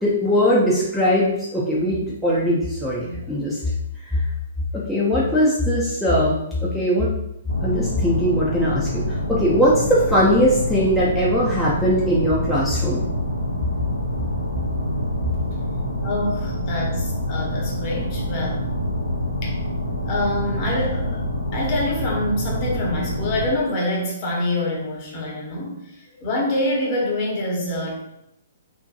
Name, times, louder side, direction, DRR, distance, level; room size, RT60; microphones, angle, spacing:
voice 1, 0.0-3.6 4.0-4.2 4.7-7.1 7.6-13.1, equal, ahead, -8 dB, 0.4 m, -20 dB
sound 1, 7.5-23.5, equal, 85° left, 0.6 m, -26 dB
voice 2, 16.0-18.7 19.4-19.5 20.1-21.2 21.5-28.0, left 1 dB, 35° left, -3 dB, 0.8 m, -26 dB
2.7 x 2.1 x 2.4 m, 0.80 s
figure-of-eight pair, 120°, 0 cm